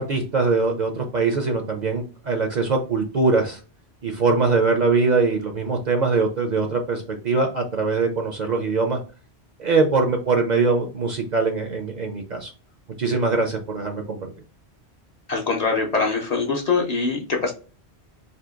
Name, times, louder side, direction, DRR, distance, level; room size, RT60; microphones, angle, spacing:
voice 1, 0.0-3.6 4.0-9.0 9.6-12.5 13.0-14.3, right 4 dB, 50° right, 3 dB, 0.6 m, -22 dB
voice 2, 15.3-17.5, left 4 dB, 45° left, 1 dB, 0.7 m, -23 dB
2.7 x 2.6 x 3.6 m, 0.36 s
omnidirectional pair, 1.1 m